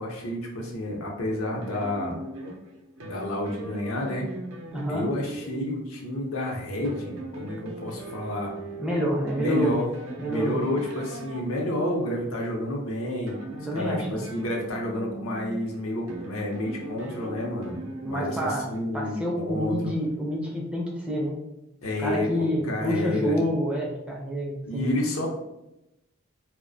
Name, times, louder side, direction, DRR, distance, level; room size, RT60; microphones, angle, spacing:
voice 1, 0.0-2.2 3.0-4.3 4.9-8.5 9.4-9.9 10.2-13.4 13.7-19.8 21.8-23.4 24.6-25.3, left 1 dB, 85° left, 0 dB, 0.6 m, -30 dB
sound 1, 1.5-12.1 13.1-18.9, right 2 dB, 80° right, 0.5 m, -40 dB
voice 2, 4.7-5.1 8.8-9.7 10.2-10.6 13.6-14.2 18.0-18.7 18.9-21.4 22.0-24.9, equal, 5° right, -4 dB, 0.4 m, -28 dB
2.3 x 2.1 x 2.5 m, 0.90 s
head